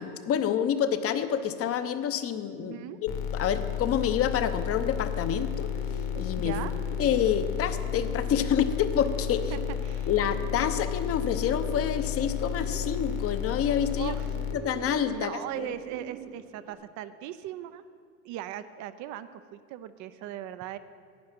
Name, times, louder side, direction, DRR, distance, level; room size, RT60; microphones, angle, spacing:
voice 1, 0.0-5.7 6.2-6.6 7.0-9.5 10.1-14.1 14.5-15.7, left 8 dB, 30° left, 11 dB, 0.8 m, -28 dB
voice 2, 2.6-3.0 6.4-6.7 9.5-10.1 13.9-14.3 15.1-17.8 18.2-20.8, right 12 dB, 40° right, 13 dB, 0.6 m, -38 dB
sound 1, 3.1-14.5, left 9 dB, 50° left, 1.5 m, -32 dB
Bird, 5.1-16.7, right 6 dB, 75° right, 1.6 m, -44 dB
10.5 x 9.4 x 6.0 m, 2.2 s
hypercardioid pair, 100°, 44 cm